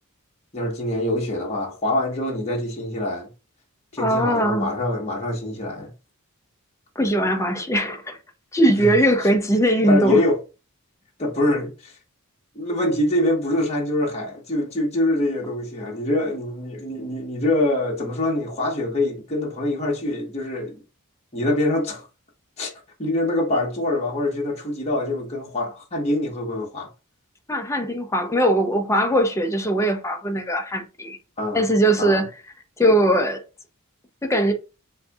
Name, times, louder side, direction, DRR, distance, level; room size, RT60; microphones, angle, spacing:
voice 1, 0.5-3.3 3.9-5.9 8.8-8.9 9.9-10.4 11.2-12.0 12.5-20.8 21.3-22.0 22.6-22.7 23.0-26.9 31.4-31.6 32.0-32.2, left 1 dB, 30° left, 1.1 m, -24 dB
voice 2, 4.0-4.7 7.0-8.2 8.5-10.2 27.5-31.2 31.5-32.3 32.8-33.4 34.2-34.5, right 1 dB, 15° left, 0.7 m, -20 dB
7.6 x 2.7 x 2.3 m
head